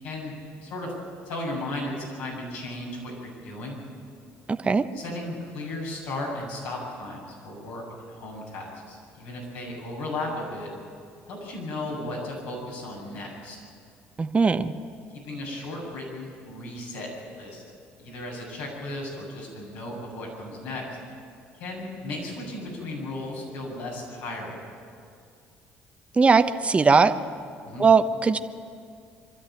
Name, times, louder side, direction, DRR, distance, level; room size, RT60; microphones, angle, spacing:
voice 1, 0.0-0.4 0.6-0.9 1.2-3.8 4.9-10.7 11.3-13.6 15.2-17.6 18.0-20.9 21.6-24.6 27.6-27.9, left 1 dB, 85° left, -3 dB, 7.8 m, -35 dB
voice 2, 4.5-4.8 14.2-14.7 26.2-27.1 27.8-28.4, right 4 dB, 25° right, 9 dB, 1.0 m, -19 dB
24.5 x 13.0 x 9.1 m, 2.3 s
supercardioid pair, 75°, 5 cm